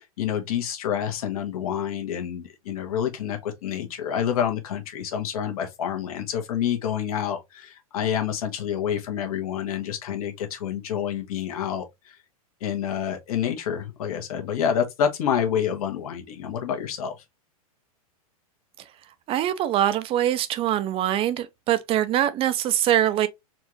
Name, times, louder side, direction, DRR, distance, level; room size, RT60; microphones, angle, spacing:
voice 1, 0.0-12.2 12.6-17.2, left 9 dB, 70° left, 1.3 m, -28 dB
voice 2, 19.3-23.3, right 11 dB, 30° right, 0.4 m, -23 dB
4.2 x 2.5 x 3.0 m
hypercardioid pair, 120°, 19 cm